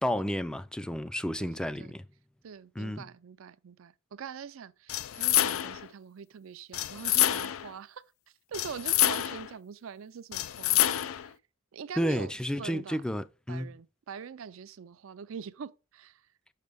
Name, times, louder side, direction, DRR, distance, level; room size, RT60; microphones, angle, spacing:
voice 1, 0.0-2.0 2.8-3.1 12.0-13.7, equal, 5° left, 0.3 m, -31 dB
voice 2, 1.4-2.0 2.4-8.0 8.5-10.9 11.2-11.3 11.7-12.3 12.6-13.0 13.5-16.2, right 7 dB, 75° right, 0.4 m, -43 dB
sound 1, 4.9-5.9 6.7-7.7 8.5-9.5 10.3-11.3, left 13 dB, 85° left, 0.4 m, -27 dB
6.6 x 5.8 x 3.4 m
head